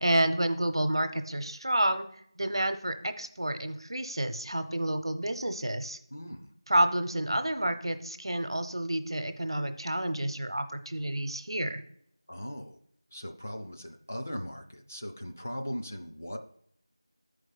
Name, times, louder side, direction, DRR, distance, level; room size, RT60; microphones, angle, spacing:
voice 1, 0.0-2.1 2.4-6.0 6.7-11.8, right 1 dB, 70° right, 9 dB, 0.8 m, -29 dB
voice 2, 6.1-6.5 12.3-12.8 13.1-16.4, equal, 25° left, 4 dB, 0.4 m, -39 dB
10.5 x 4.8 x 4.0 m, 0.67 s
figure-of-eight pair, 180°, 3 cm